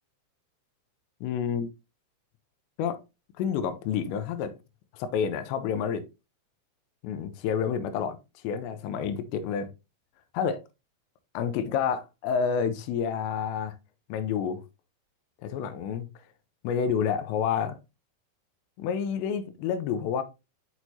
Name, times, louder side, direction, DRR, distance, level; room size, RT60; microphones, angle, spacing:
voice 1, 1.2-1.7 2.8-3.0 3.4-4.5 4.9-6.0 7.0-8.2 8.4-9.7 10.3-10.6 11.3-13.7 14.1-14.6 15.4-16.1 16.6-17.8 18.8-20.2, left 7 dB, 80° left, 2.8 m, -29 dB
6.1 x 5.9 x 2.7 m
omnidirectional pair, 5.2 m